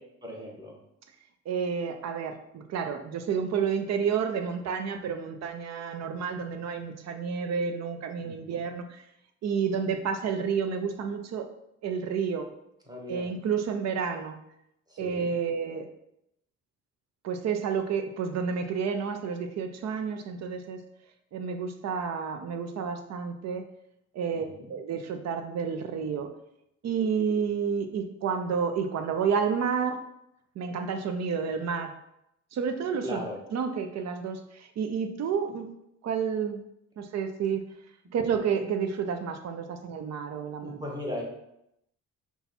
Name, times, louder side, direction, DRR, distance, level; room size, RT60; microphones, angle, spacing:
voice 1, 0.2-0.7 8.2-8.6 12.9-13.3 14.9-15.3 24.3-24.7 33.0-33.4 40.6-41.2, left 1 dB, 15° right, -2 dB, 1.3 m, -38 dB
voice 2, 1.5-9.0 9.4-11.5 11.8-12.5 13.1-14.4 15.0-15.9 17.2-20.8 21.3-23.6 24.1-26.3 26.8-30.0 30.6-32.0 32.5-33.2 33.5-35.7 36.0-36.6 37.0-37.6 38.1-40.8, right 6 dB, 60° right, 7 dB, 0.6 m, -30 dB
5.5 x 2.3 x 4.2 m, 0.81 s
cardioid pair, 90°, 30 cm